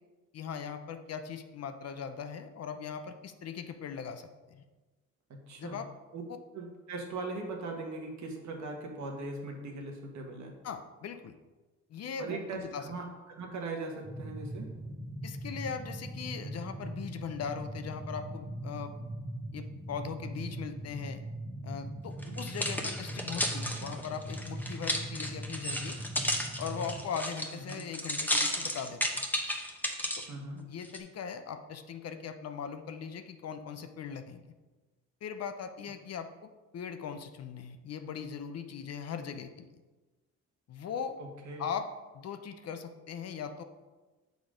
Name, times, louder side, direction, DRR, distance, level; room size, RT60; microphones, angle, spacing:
voice 1, 0.3-4.6 5.6-5.9 10.6-11.4 11.9-12.9 15.2-18.9 19.5-21.2 21.6-26.0 26.6-29.3 30.2-30.3 30.7-34.5 35.2-39.7 40.7-41.2 41.6-43.6, left 7 dB, 55° left, 8 dB, 0.7 m, -40 dB
voice 2, 5.3-5.8 6.1-6.2 6.5-10.6 12.2-14.7 22.2-22.3 27.7-27.9 30.3-30.6 41.4-41.7, right 3 dB, 65° right, 1 dB, 1.5 m, -40 dB
sound 1, 14.0-27.0, right 1 dB, 40° right, 1.4 m, -41 dB
sound 2, 22.2-30.3 30.8-31.0, left 1 dB, 5° left, 1.0 m, -33 dB
7.0 x 4.0 x 5.0 m, 1.2 s
cardioid pair, 90°, 30 cm